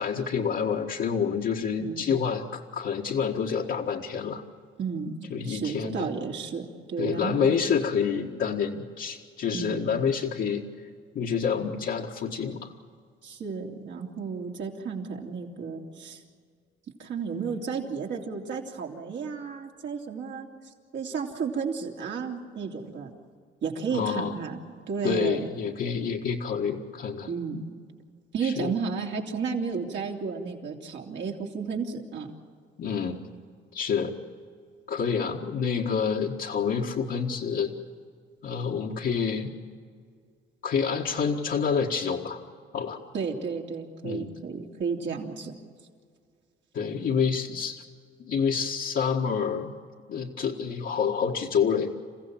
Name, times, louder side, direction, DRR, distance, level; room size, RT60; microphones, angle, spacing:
voice 1, 0.0-4.4 5.3-6.1 7.0-10.6 11.2-12.7 23.9-24.3 25.0-27.3 28.4-28.7 32.8-33.3 33.7-34.1 34.9-37.7 38.4-39.5 40.6-42.4 42.7-43.0 44.0-44.3 46.7-47.8 48.3-49.7 50.1-51.9, left 6 dB, 65° left, -4 dB, 1.8 m, -28 dB
voice 2, 4.8-7.6 9.5-9.9 13.2-16.2 17.0-23.1 23.6-24.6 24.9-25.5 27.3-27.6 28.3-32.3 43.1-45.6, right 5 dB, 65° right, 0 dB, 3.2 m, -33 dB
29.0 x 15.5 x 7.4 m, 2.1 s
cardioid pair, 90°, 20 cm